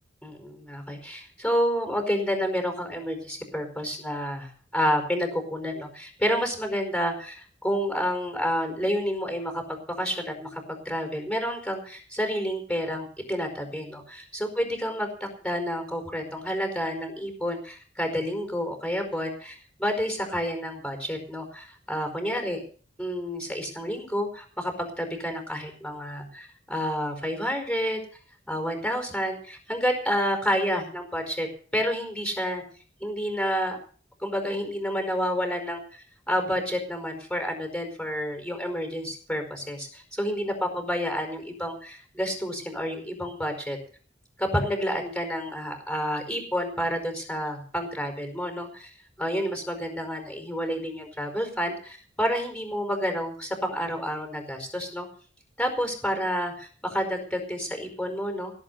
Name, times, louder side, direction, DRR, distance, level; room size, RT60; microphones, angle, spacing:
voice 1, 0.2-22.6 23.0-28.0 28.5-32.6 33.0-33.8 34.2-43.8 44.4-48.9 49.2-55.1 55.6-58.5, equal, 5° left, 5 dB, 4.8 m, -29 dB
17.5 x 8.3 x 8.2 m, 0.42 s
head